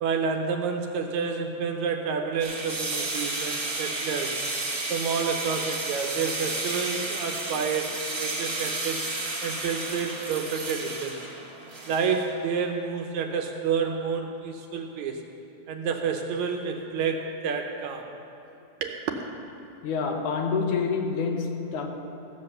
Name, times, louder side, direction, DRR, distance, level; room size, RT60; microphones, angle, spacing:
voice 1, 0.0-4.4 4.9-9.0 9.4-11.2 11.9-15.2 15.7-18.1 18.8-19.1, right 6 dB, 75° right, 3 dB, 1.9 m, -29 dB
sound 1, 2.4-12.4, right 2 dB, 35° right, 1.7 m, -32 dB
voice 2, 19.8-21.9, left 5 dB, 75° left, 3 dB, 2.4 m, -27 dB
15.5 x 7.5 x 6.6 m, 2.8 s
omnidirectional pair, 3.6 m